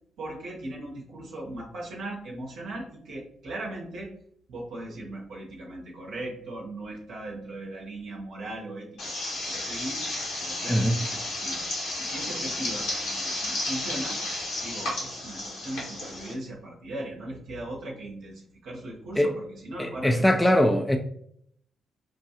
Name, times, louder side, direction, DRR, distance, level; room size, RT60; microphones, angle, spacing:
voice 1, 0.2-4.1 4.5-10.0 10.4-11.7 12.0-14.2 14.6-20.6, right 1 dB, 65° right, 0.8 m, -38 dB
sound 1, 9.0-16.3, left 1 dB, 75° left, 1.4 m, -32 dB
voice 2, 19.8-21.0, equal, 10° left, 0.4 m, -21 dB
4.8 x 2.2 x 2.8 m
hypercardioid pair, 40°, 0 cm